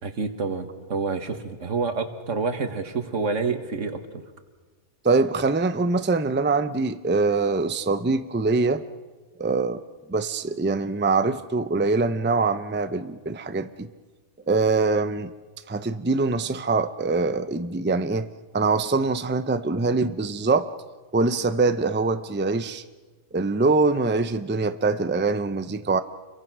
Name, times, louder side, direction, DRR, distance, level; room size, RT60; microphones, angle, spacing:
voice 1, 0.0-4.2, right 4 dB, 75° right, 8 dB, 2.0 m, -28 dB
voice 2, 5.0-8.8 9.4-9.8 10.1-13.9 14.5-15.3 15.7-18.3 18.5-20.7 21.1-22.8 23.3-26.0, right 3 dB, 15° right, 11 dB, 0.5 m, -23 dB
29.0 x 23.0 x 6.2 m, 1.3 s
omnidirectional pair, 1.3 m